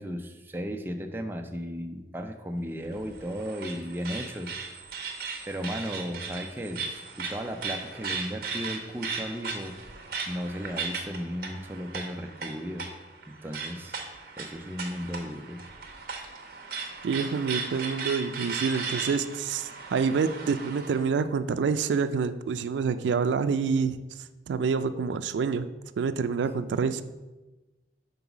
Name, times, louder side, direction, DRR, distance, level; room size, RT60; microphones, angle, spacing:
voice 1, 0.0-4.8 5.5-9.8 10.3-12.9 13.3-14.0 14.4-15.7, equal, 10° right, 4 dB, 0.4 m, -35 dB
sound 1, 2.8-21.0, right 4 dB, 55° right, 0.9 m, -37 dB
voice 2, 17.0-24.0 24.5-25.7 26.0-27.0, right 5 dB, 90° right, 12 dB, 0.3 m, -27 dB
5.4 x 3.9 x 5.9 m, 1.1 s
head